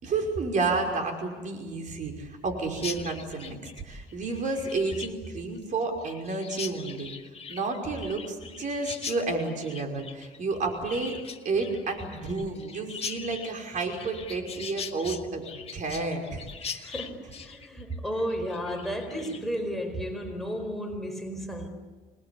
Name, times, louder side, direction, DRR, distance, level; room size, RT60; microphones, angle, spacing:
voice 1, 0.0-3.6 3.8-7.1 7.5-11.2 11.4-16.9, right 3 dB, 50° right, 5.5 m, -31 dB
Chirp tweet, 2.8-19.6, left 6 dB, 35° left, 1.7 m, -41 dB
voice 2, 16.8-21.7, equal, ahead, 4.7 m, -33 dB
27.5 x 20.5 x 8.7 m
cardioid pair, 110°, 17 cm